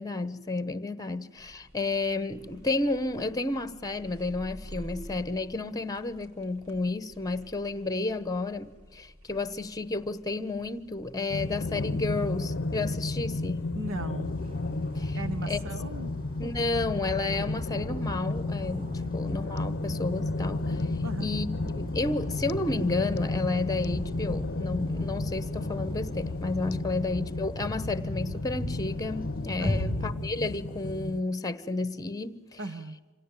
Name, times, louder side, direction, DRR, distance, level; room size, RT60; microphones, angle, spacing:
voice 1, 0.0-13.7 15.0-15.2 15.5-15.6 16.4-20.8 21.2-21.5 21.8-32.6, left 3 dB, 15° left, 1.0 m, -31 dB
sound 1, 1.4-15.4, equal, 80° right, 3.4 m, -51 dB
sound 2, 11.3-31.2, left 2 dB, 50° left, 0.7 m, -33 dB
voice 2, 13.7-14.4 15.1-16.1 21.0-21.3 29.6-30.0 32.6-33.0, right 2 dB, 65° right, 1.1 m, -37 dB
sound 3, 14.2-30.1, equal, 25° right, 7.3 m, -39 dB
26.0 x 17.5 x 9.0 m
head